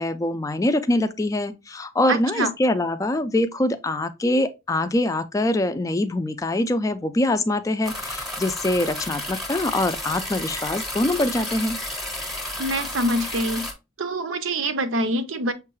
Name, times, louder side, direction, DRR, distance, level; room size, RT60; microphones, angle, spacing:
voice 1, 0.0-11.8, left 1 dB, 15° left, 0.3 m, -24 dB
voice 2, 2.1-2.5 12.6-13.6 14.0-15.5, right 1 dB, 80° right, 0.6 m, -25 dB
sound 1, 7.8-13.7, left 1 dB, ahead, 0.8 m, -32 dB
6.4 x 2.3 x 3.0 m
head